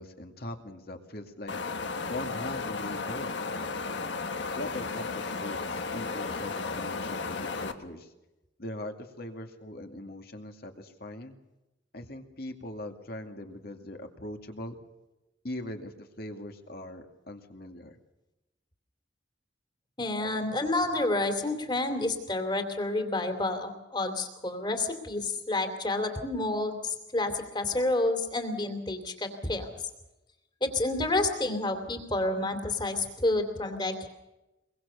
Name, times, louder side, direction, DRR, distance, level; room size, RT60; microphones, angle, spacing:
voice 1, 0.0-1.5 2.1-3.3 4.5-8.1 8.6-11.3 11.9-14.8 15.4-18.0, left 1 dB, 50° left, 4 dB, 2.3 m, -41 dB
Wind, 1.5-7.7, left 4 dB, 70° left, 1.5 m, -34 dB
voice 2, 20.0-29.7 30.6-34.1, left 2 dB, 25° left, 6 dB, 2.8 m, -29 dB
23.5 x 22.5 x 6.9 m, 0.99 s
head